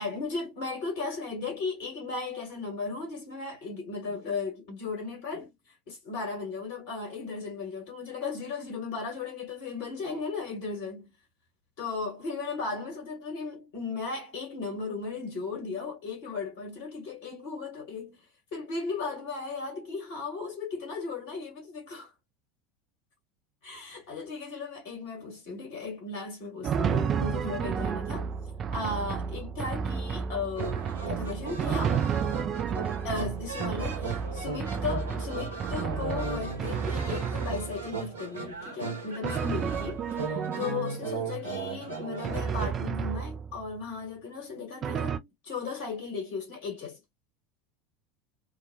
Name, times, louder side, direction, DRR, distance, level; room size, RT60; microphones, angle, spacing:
voice 1, 0.0-5.5 5.9-11.1 11.8-18.2 18.5-22.1 23.6-28.3 28.7-32.1 33.0-47.0, left 4 dB, 60° left, 1.4 m, -36 dB
Drum, 26.6-38.0 39.2-41.2 42.2-43.7 44.8-45.2, right 7 dB, 35° right, 0.3 m, -32 dB
sound 1, 30.6-42.7, right 4 dB, 85° right, 0.9 m, -37 dB
2.8 x 2.1 x 2.7 m
figure-of-eight pair, 75°, 0 cm